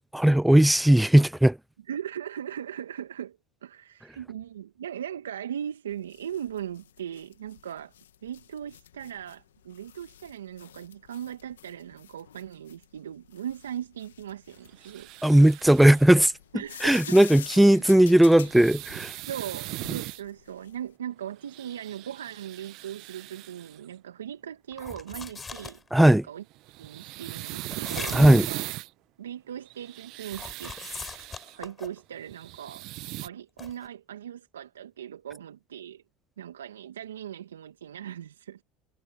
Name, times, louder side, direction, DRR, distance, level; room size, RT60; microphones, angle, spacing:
voice 1, 0.1-1.6 15.2-16.3 16.8-19.1 25.9-26.2 28.1-28.5, right 1 dB, 5° right, 0.5 m, -17 dB
voice 2, 1.9-7.9 8.2-15.1 16.5-17.7 19.3-26.4 26.8-28.6 29.2-30.8 31.5-36.0 36.4-38.6, right 9 dB, 85° right, 2.1 m, -39 dB
sound 1, 5.9-20.9, left 11 dB, 85° left, 2.2 m, -48 dB
sound 2, 14.8-16.1 18.1-20.2 21.4-23.8 26.5-28.9 29.7-31.6 32.2-33.3, right 20 dB, 60° right, 1.1 m, -39 dB
sound 3, 24.7-26.1 27.7-28.5 30.3-32.0 33.6-33.9, left 4 dB, 25° left, 6.3 m, -39 dB
hypercardioid pair, 70°, 0 cm